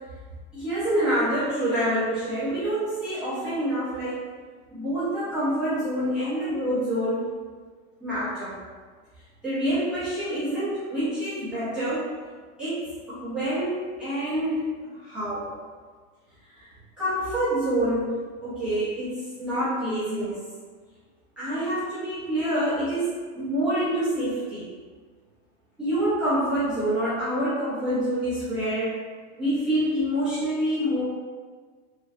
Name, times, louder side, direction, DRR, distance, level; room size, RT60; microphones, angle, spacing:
voice 1, 0.5-4.2 4.7-7.3 8.0-8.5 9.4-12.0 12.6-14.7 15.0-15.5 16.6-16.7 17.0-18.2 18.4-20.4 21.4-24.7 25.8-28.9 29.3-31.0, right 1 dB, 5° right, -16 dB, 0.3 m, -27 dB
3.1 x 2.4 x 2.5 m, 1.5 s
supercardioid pair, 160°, 40 cm